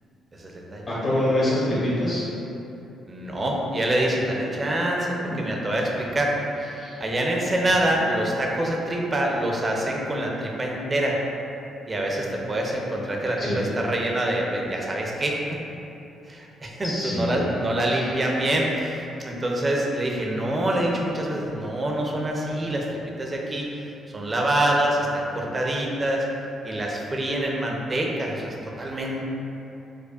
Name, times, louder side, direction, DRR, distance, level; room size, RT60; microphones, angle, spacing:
voice 1, 0.3-0.9 3.1-6.3 6.6-11.2 11.9-15.4 16.2-22.9 23.2-26.3 26.6-29.2, right 1 dB, 30° right, -1 dB, 0.5 m, -26 dB
voice 2, 0.9-2.3 5.3-5.4 6.8-6.9 13.4-13.6 16.8-17.3 17.9-18.1, left 1 dB, 50° left, -9 dB, 0.9 m, -25 dB
4.9 x 2.2 x 2.4 m, 2.9 s
cardioid pair, 90°, 0 cm